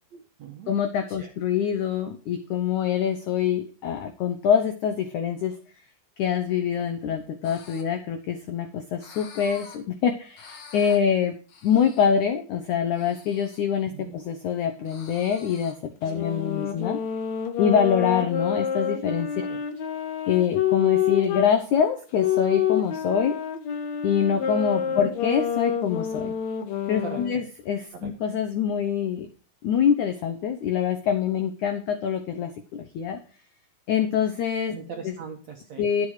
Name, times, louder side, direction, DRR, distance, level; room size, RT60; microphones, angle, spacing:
voice 1, 0.1-0.7 1.1-1.3 13.9-14.1 16.1-16.2 19.4-19.6 24.9-25.1 27.0-27.4 27.9-28.1 34.7-35.9, right 5 dB, 70° right, 3 dB, 1.7 m, -40 dB
voice 2, 0.7-5.5 6.2-11.3 11.6-15.8 16.0-17.0 17.6-19.3 20.3-23.4 24.0-26.3 26.9-29.3 29.6-33.2 33.9-34.7 35.0-35.1 35.8-36.1, left 8 dB, 85° left, 7 dB, 1.7 m, -25 dB
sound 1, 7.4-7.8 9.0-9.8 10.4-11.0 11.5-12.1 12.9-13.6 14.8-15.7, left 5 dB, 50° left, 2.0 m, -47 dB
sound 2, 16.0-21.5 22.1-27.4, left 9 dB, 65° left, 1.8 m, -27 dB
11.5 x 8.5 x 4.8 m, 0.38 s
omnidirectional pair, 4.8 m